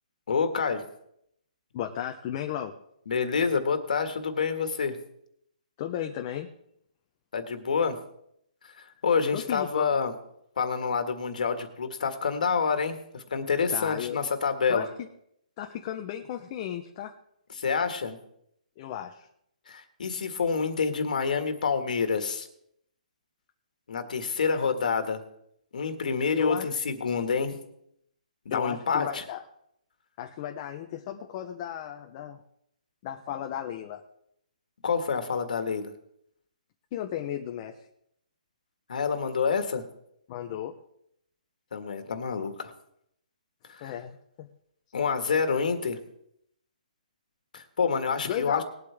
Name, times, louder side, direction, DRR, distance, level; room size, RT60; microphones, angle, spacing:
voice 1, 0.3-0.8 3.1-5.0 7.3-8.0 8.8-10.1 10.6-14.9 17.5-18.2 19.7-22.5 23.9-25.2 25.7-27.6 28.5-29.2 34.8-35.9 38.9-39.8 41.7-42.7 43.7-43.9 44.9-46.0 47.5-48.6, left 5 dB, 70° left, 7 dB, 1.8 m, -27 dB
voice 2, 1.7-2.8 5.8-6.5 9.3-9.9 13.7-14.2 14.7-15.1 15.6-17.2 18.8-19.3 26.3-26.7 28.5-29.4 30.2-32.4 33.0-34.0 36.9-37.8 40.3-40.7 43.8-44.5 48.3-48.6, left 10 dB, 30° left, 4 dB, 0.8 m, -34 dB
20.0 x 8.4 x 3.5 m, 0.73 s
hypercardioid pair, 160°, 4 cm